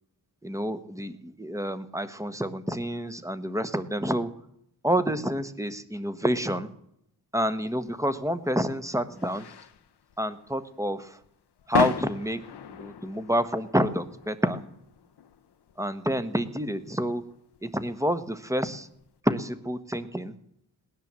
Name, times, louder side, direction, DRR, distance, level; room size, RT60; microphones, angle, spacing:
voice 1, 0.4-4.3 4.8-6.7 7.3-9.5 10.2-11.2 11.7-12.4 12.7-14.6 15.8-17.2 17.6-18.9 19.2-20.3, equal, 10° right, 12 dB, 1.3 m, -28 dB
sound 1, 7.8-19.1, left 8 dB, 80° left, 1.0 m, -38 dB
18.0 x 10.5 x 7.5 m, 0.77 s
cardioid pair, 75°, 39 cm